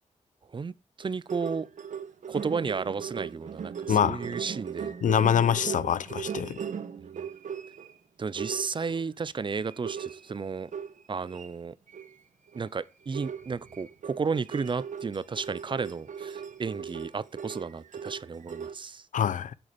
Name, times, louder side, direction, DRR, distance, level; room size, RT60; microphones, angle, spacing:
voice 1, 1.0-1.7 2.3-4.9 8.2-10.7 11.1-11.7 12.5-19.0, right 5 dB, 40° right, 0.6 m, -33 dB
sound 1, 1.0-7.9 8.4-9.0 9.6-11.5 11.9-12.1 12.5-12.7 13.1-18.7, right 7 dB, 75° right, 1.2 m, -38 dB
voice 2, 3.9-4.2 5.0-6.6 19.1-19.5, left 8 dB, 85° left, 0.6 m, -25 dB
8.6 x 7.8 x 8.2 m
wide cardioid pair, 105°, 13 cm